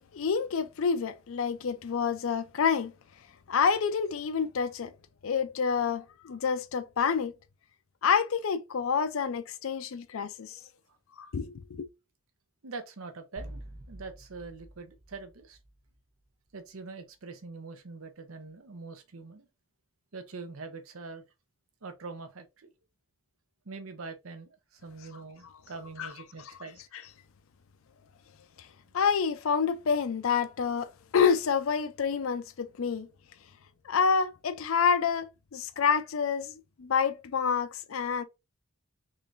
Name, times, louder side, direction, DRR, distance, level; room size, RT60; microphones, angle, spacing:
voice 1, 0.1-2.9 3.5-4.9 5.2-7.3 8.0-10.6 11.2-11.9 26.0-26.1 26.9-27.0 28.9-33.1 33.9-38.2, left 6 dB, 70° left, 0.4 m, -28 dB
voice 2, 12.6-13.6 13.9-15.6 16.5-19.5 20.1-21.2 21.8-22.7 23.6-26.8, right 4 dB, 75° right, 0.8 m, -43 dB
sound 1, 13.4-16.2, right 1 dB, 45° right, 0.8 m, -47 dB
3.7 x 3.3 x 2.5 m
head